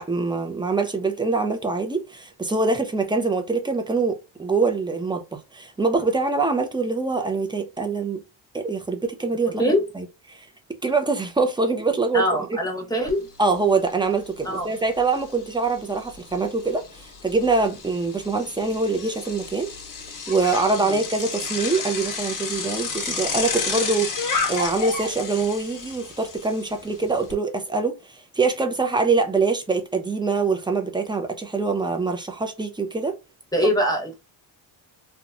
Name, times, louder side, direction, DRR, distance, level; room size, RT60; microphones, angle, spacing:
voice 1, 0.0-5.2 5.5-8.2 8.5-9.6 10.0-10.5 10.8-12.2 13.4-16.8 17.2-19.7 20.3-24.2 24.5-28.0 28.4-33.2, right 3 dB, 10° right, 0.5 m, -24 dB
voice 2, 12.1-13.3 14.4-14.7 20.7-21.0 33.5-34.1, equal, 10° left, 1.2 m, -23 dB
Bicycle, 13.1-13.2 13.5-27.3, left 5 dB, 40° left, 0.9 m, -32 dB
2.9 x 2.2 x 2.5 m
cardioid pair, 90°, 47 cm